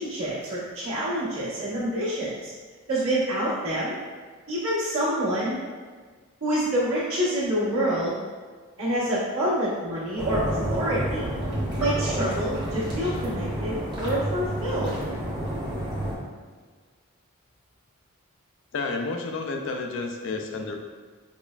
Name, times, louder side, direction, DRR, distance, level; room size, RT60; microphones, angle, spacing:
voice 1, 0.0-2.5 2.9-4.0 4.5-5.6 6.4-8.2 8.8-11.3 11.8-14.9, right 1 dB, 65° right, -10 dB, 1.4 m, -27 dB
sound 1, 10.2-16.1, right 1 dB, 20° right, 0.8 m, -30 dB
voice 2, 18.7-20.8, left 3 dB, 55° left, 3 dB, 0.3 m, -30 dB
5.1 x 2.1 x 2.4 m, 1.5 s
head